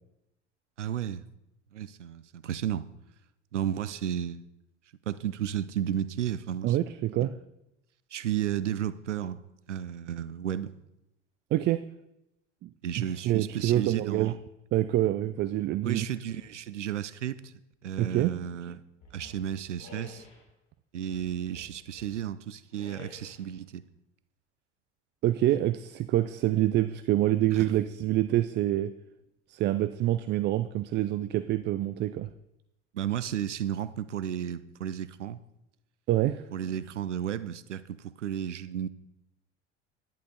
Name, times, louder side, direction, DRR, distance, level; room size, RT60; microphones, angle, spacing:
voice 1, 0.8-1.2 1.7-2.9 3.5-4.4 5.1-6.9 7.2-7.3 8.1-9.4 9.7-10.7 12.8-14.4 15.8-17.5 17.8-18.8 19.1-20.3 20.9-23.8 27.5-27.7 32.9-35.4 36.5-38.9, right 10 dB, 80° right, 15 dB, 0.6 m, -33 dB
voice 2, 6.6-7.3 11.5-11.8 12.6-12.7 13.0-14.3 14.7-16.1 18.0-18.3 25.2-28.9 29.5-32.3 36.1-36.4, right 14 dB, 30° right, 13 dB, 0.4 m, -26 dB
sound 1, 19.0-20.5 21.0-22.2 22.7-23.5, left 2 dB, 60° left, 3.5 m, -50 dB
11.0 x 10.5 x 3.9 m, 0.87 s
figure-of-eight pair, 70°, 35 cm